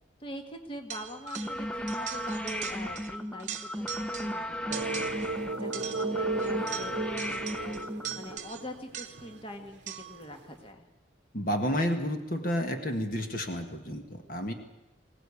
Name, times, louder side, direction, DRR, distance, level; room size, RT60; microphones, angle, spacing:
voice 1, 0.2-5.1 5.5-7.8 8.2-10.9, equal, 30° left, 4 dB, 1.8 m, -43 dB
sound 1, 0.9-1.6 1.9-3.1 3.4-4.4 4.7-5.3 5.7-9.4 9.9-10.2, right 10 dB, 40° right, 1.1 m, -41 dB
sound 2, 1.3-8.4, equal, 5° left, 0.8 m, -35 dB
sound 3, 4.7-10.5, right 3 dB, 65° right, 0.8 m, -35 dB
voice 2, 11.3-14.5, equal, 45° left, 4 dB, 1.7 m, -31 dB
21.0 x 17.5 x 8.5 m, 0.98 s
head